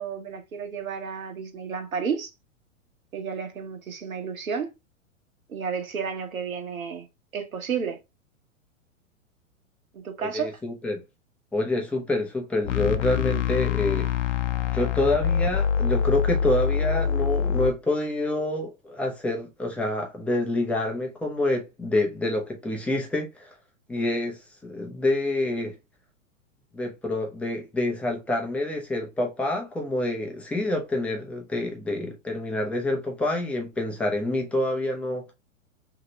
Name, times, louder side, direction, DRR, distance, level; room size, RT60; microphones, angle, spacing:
voice 1, 0.0-2.3 3.1-4.7 5.5-7.1 7.3-8.0 9.9-10.6, right 6 dB, 85° right, 1.0 m, -32 dB
voice 2, 10.2-11.0 11.5-14.1 14.7-23.6 23.9-25.7 26.7-35.2, left 2 dB, 5° left, 0.5 m, -27 dB
sound 1, 12.6-17.7, left 7 dB, 65° left, 0.6 m, -25 dB
2.9 x 2.8 x 3.0 m
hypercardioid pair, 115°, 41 cm